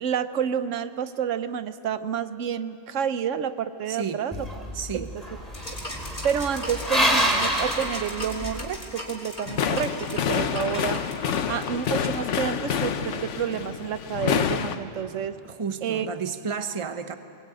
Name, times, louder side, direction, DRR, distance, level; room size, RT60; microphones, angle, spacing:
voice 1, 0.0-4.4 4.9-5.2 6.2-11.0 11.5-15.4 15.8-16.1, right 8 dB, 85° right, 12 dB, 1.1 m, -29 dB
voice 2, 3.9-4.2 4.7-5.1 11.3-11.4 15.4-17.2, right 6 dB, 30° right, 9 dB, 0.9 m, -32 dB
sound 1, 4.3-8.7, equal, ahead, 3.7 m, -27 dB
sound 2, 5.5-12.4, left 1 dB, 35° left, 3.7 m, -36 dB
sound 3, 9.5-14.8, left 7 dB, 75° left, 1.2 m, -27 dB
22.0 x 20.5 x 9.1 m, 2.6 s
omnidirectional pair, 1.3 m